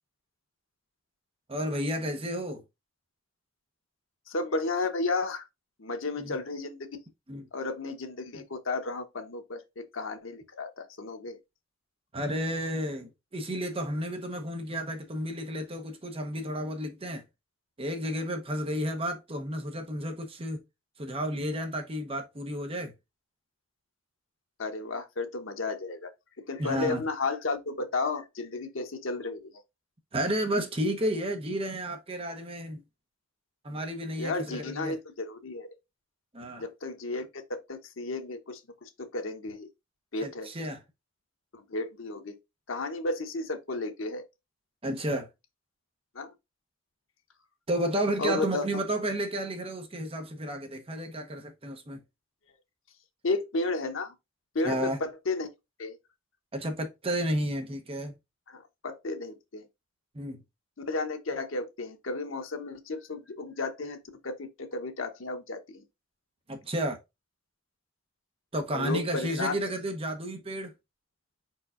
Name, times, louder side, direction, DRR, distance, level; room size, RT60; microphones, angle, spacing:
voice 1, 1.5-2.6 6.2-6.4 7.3-7.4 12.1-17.2 17.8-20.6 21.0-22.9 26.6-27.0 30.1-32.8 33.6-34.9 36.3-36.7 40.2-40.8 44.8-45.3 47.7-52.0 54.6-55.0 56.5-58.1 60.1-60.4 66.5-67.0 68.5-70.7, right 1 dB, 30° right, 0.9 m, -32 dB
voice 2, 4.3-5.4 5.8-6.9 7.5-11.4 24.6-26.1 26.5-29.5 34.2-35.7 36.6-39.7 40.1-40.5 41.5-42.4 42.7-44.2 46.1-46.3 48.2-48.7 53.2-54.1 54.5-55.5 55.8-56.0 58.5-59.7 60.9-65.8 68.7-69.6, left 3 dB, 85° left, 0.9 m, -33 dB
4.6 x 4.6 x 2.5 m
head